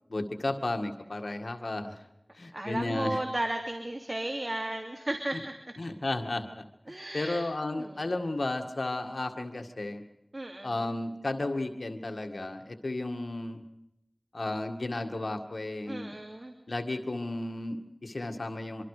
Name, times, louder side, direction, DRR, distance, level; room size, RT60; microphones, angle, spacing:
voice 1, 0.1-2.0 2.3-3.2 5.8-6.6 7.1-10.0 10.6-13.6 14.3-16.2 16.7-18.8, left 2 dB, 85° left, 6 dB, 1.9 m, -33 dB
voice 2, 2.5-5.4 5.7-5.8 6.9-7.4 7.8-8.0 10.3-10.9 15.9-16.5, right 1 dB, 45° right, 4 dB, 2.9 m, -34 dB
25.5 x 25.0 x 5.0 m, 0.82 s
wide cardioid pair, 50°, 0 cm